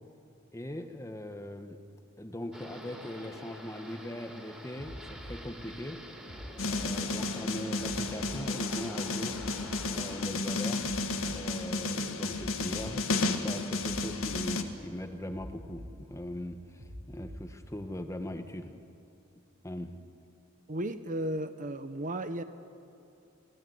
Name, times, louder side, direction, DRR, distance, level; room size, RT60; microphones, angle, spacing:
voice 1, 0.5-1.8 2.2-6.0 6.6-9.4 9.9-10.8 11.3-18.7 19.6-19.9, left 1 dB, 15° left, 7 dB, 1.4 m, -40 dB
sound 1, 2.5-10.3, equal, 5° right, 3.4 m, -47 dB
sound 2, 4.8-5.4 6.3-6.9 7.8-8.4 9.3-9.9 10.8-11.4 12.3-12.9 13.8-14.4 15.3-15.9 16.8-17.4 18.3-18.4, equal, 65° right, 6.9 m, -44 dB
sound 3, 6.6-14.6, left 3 dB, 85° left, 1.9 m, -32 dB
voice 2, 20.7-22.4, right 1 dB, 40° right, 10 dB, 1.1 m, -34 dB
28.5 x 19.5 x 9.5 m, 2.6 s
head